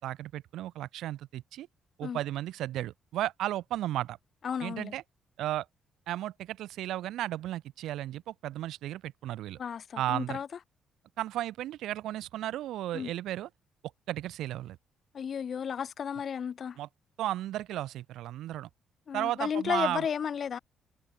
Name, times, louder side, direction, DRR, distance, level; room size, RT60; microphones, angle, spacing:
voice 1, 0.0-1.7 2.0-4.2 4.6-5.0 5.4-5.7 6.1-9.6 10.0-10.4 11.2-13.5 14.1-14.8 16.8-16.9 17.2-18.7 19.1-20.1, right 13 dB, 85° right, 4.7 m, -34 dB
voice 2, 4.4-4.9 9.6-10.5 12.9-13.1 15.1-16.8 19.1-20.6, left 7 dB, 50° left, 5.2 m, -33 dB
cardioid pair, 90°, 0 cm